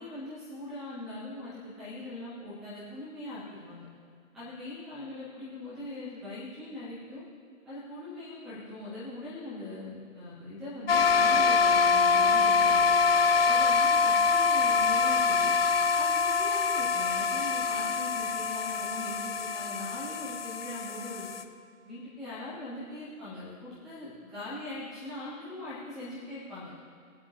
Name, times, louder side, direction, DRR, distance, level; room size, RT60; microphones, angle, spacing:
voice 1, 0.0-3.8 4.3-7.2 7.7-12.9 13.5-15.5 15.9-21.3 21.8-26.7, left 2 dB, ahead, -12 dB, 0.5 m, -41 dB
sound 1, 10.9-21.4, left 5 dB, 45° left, 0.8 m, -25 dB
21.5 x 7.9 x 2.9 m, 2.4 s
figure-of-eight pair, 150°, 42 cm